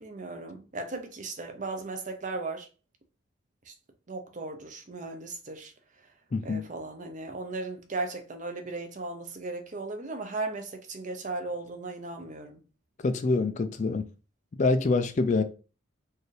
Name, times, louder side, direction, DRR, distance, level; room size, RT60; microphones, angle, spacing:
voice 1, 0.0-2.7 3.7-3.8 4.1-5.7 6.4-12.6, right 3 dB, 35° right, 0.6 m, -36 dB
voice 2, 6.3-6.7 13.0-14.1 14.6-15.4, left 3 dB, 35° left, 0.3 m, -25 dB
4.4 x 2.6 x 3.2 m
head